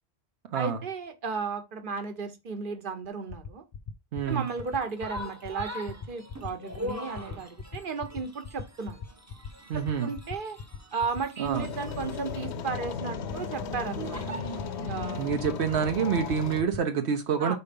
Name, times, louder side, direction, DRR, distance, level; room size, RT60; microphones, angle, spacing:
voice 1, 0.5-3.6 4.3-9.0 9.7-10.6 10.9-14.2 14.8-15.3 17.4-17.6, right 5 dB, 55° right, 1.2 m, -34 dB
sound 1, 3.0-16.8, left 6 dB, 45° left, 0.6 m, -39 dB
voice 2, 4.1-4.5 9.7-10.1 11.4-11.7 15.2-17.6, right 7 dB, 80° right, 1.0 m, -27 dB
sound 2, 4.3-16.3, equal, 15° right, 0.8 m, -42 dB
sound 3, 11.5-16.6, left 7 dB, 80° left, 0.9 m, -36 dB
5.1 x 4.3 x 5.1 m
omnidirectional pair, 1.1 m